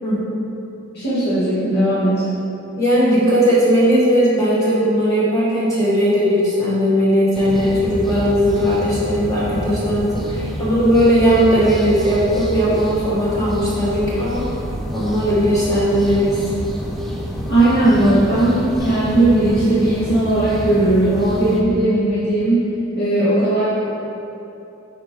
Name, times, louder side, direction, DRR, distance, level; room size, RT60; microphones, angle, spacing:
voice 1, 0.0-0.4 2.8-14.5 14.9-16.4, equal, 15° left, -8 dB, 1.2 m, -17 dB
voice 2, 0.9-2.2 17.5-22.7 22.9-23.6, right 1 dB, 55° left, -12 dB, 1.6 m, -17 dB
sound 1, 7.3-21.6, equal, ahead, 0.6 m, -28 dB
8.8 x 4.4 x 3.7 m, 2.9 s
head